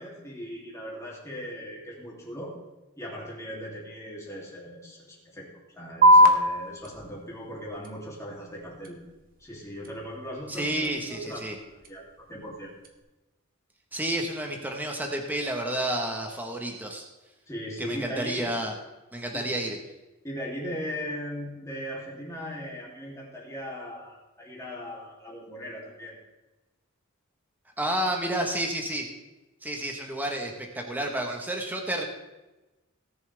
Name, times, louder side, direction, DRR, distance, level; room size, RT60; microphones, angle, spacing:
voice 1, 0.0-2.6 3.0-5.5 5.7-9.0 9.4-12.7 17.5-18.5 19.3-19.5 20.2-26.2, equal, 15° left, -4 dB, 3.0 m, -38 dB
sound 1, 6.0-13.0, equal, 40° right, 1.2 m, -26 dB
voice 2, 10.5-11.6 13.9-17.0 17.8-18.7 19.1-19.8 27.8-29.1 29.6-32.0, right 1 dB, 10° right, 2 dB, 1.3 m, -30 dB
18.0 x 7.0 x 3.5 m, 1.1 s
head